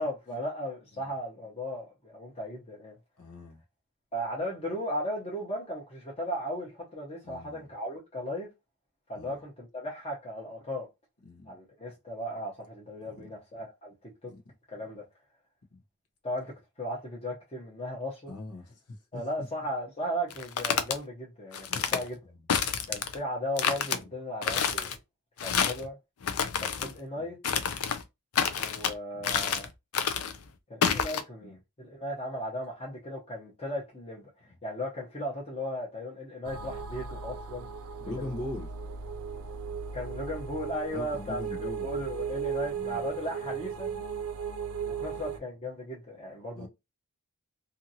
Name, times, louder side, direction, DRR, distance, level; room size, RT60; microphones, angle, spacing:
voice 1, 0.0-2.9 4.1-8.5 9.1-10.9 11.5-13.9 14.2-14.3 14.7-15.0 16.2-18.3 19.1-22.2 22.9-24.9 25.4-26.0 26.6-27.4 28.5-29.7 30.7-34.2 34.6-37.7 38.0-38.4 39.9-43.9 44.8-46.7, equal, 25° left, 0.8 m, -36 dB
voice 2, 3.2-3.6 7.2-7.7 9.1-9.4 11.2-11.5 13.1-13.3 14.3-14.5 15.7-15.8 18.3-19.5 21.7-22.0 22.3-22.4 23.9-24.1 27.2-27.3 31.5-31.6 38.0-38.7 40.9-41.9 42.7-43.0 43.8-44.0 46.6-46.7, left 2 dB, 85° left, 0.8 m, -41 dB
sound 1, 20.3-21.0 21.5-22.0 22.5-23.2 23.6-24.0 24.4-25.0 25.4-25.9 26.2-26.9 27.4-28.0 28.3-28.9 29.2-29.7 29.9-30.4 30.8-31.2, left 7 dB, 70° left, 0.5 m, -28 dB
sound 2, 36.4-45.4, right 6 dB, 65° right, 0.4 m, -36 dB
2.7 x 2.6 x 2.7 m
head